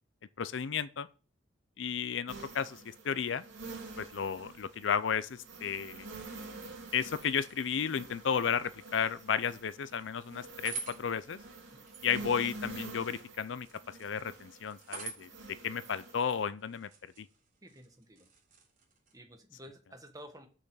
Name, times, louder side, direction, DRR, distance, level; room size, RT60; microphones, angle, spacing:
voice 1, 0.4-1.1 1.8-3.4 4.0-6.1 6.9-11.4 12.0-15.3 15.6-16.9 17.2-17.3, left 7 dB, 70° left, 0.5 m, -33 dB
sound 1, 2.3-16.4, right 3 dB, 75° right, 2.8 m, -48 dB
sound 2, 6.8-19.2, right 5 dB, 45° right, 3.3 m, -50 dB
voice 2, 17.6-18.3 19.1-20.5, equal, 20° right, 1.5 m, -52 dB
6.7 x 5.8 x 6.8 m
head